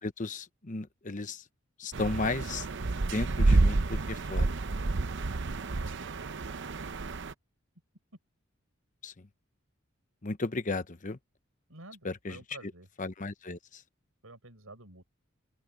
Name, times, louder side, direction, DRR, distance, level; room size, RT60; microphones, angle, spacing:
voice 1, 0.0-1.4 1.8-2.7 3.1-4.5 9.0-9.3 10.2-11.2 12.0-12.4 13.0-13.8, left 3 dB, 40° left, 0.9 m, -34 dB
sound 1, 1.9-7.3, right 2 dB, 60° right, 0.7 m, -29 dB
voice 2, 5.8-6.5 6.9-7.2 11.7-12.9 14.2-15.0, right 2 dB, 85° right, 6.2 m, -51 dB
open air
head